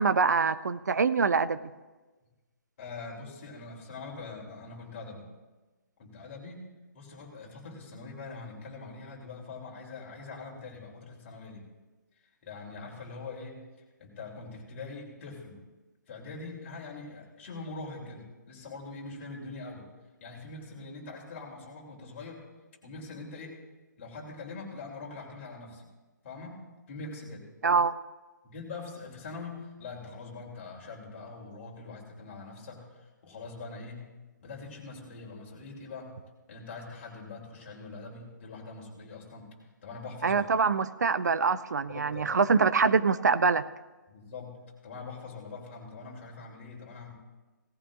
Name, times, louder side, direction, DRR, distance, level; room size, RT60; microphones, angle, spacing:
voice 1, 0.0-1.6 27.6-27.9 40.2-43.6, right 5 dB, 60° right, 14 dB, 0.5 m, -24 dB
voice 2, 2.8-5.3 6.0-6.7 6.9-11.7 12.4-13.7 14.0-15.6 16.1-19.9 20.2-22.4 22.8-23.6 24.0-25.8 26.2-27.4 28.4-34.1 34.4-36.2 36.5-39.5 39.8-40.5 41.9-42.4 44.1-47.1, left 3 dB, 35° left, -1 dB, 3.3 m, -43 dB
18.0 x 14.5 x 2.5 m, 1.2 s
figure-of-eight pair, 135°, 10 cm